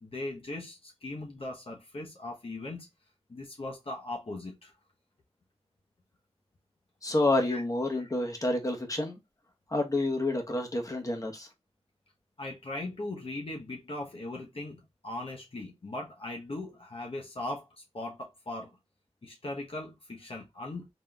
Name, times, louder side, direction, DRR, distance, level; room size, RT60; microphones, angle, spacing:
voice 1, 0.0-2.9 3.3-4.7 7.5-7.6 7.9-8.1 12.4-18.8 19.2-20.9, left 2 dB, 60° left, 0.9 m, -39 dB
voice 2, 7.0-9.2 9.7-11.5, left 2 dB, 30° left, 1.3 m, -29 dB
4.1 x 3.6 x 2.3 m
wide cardioid pair, 50°, 11 cm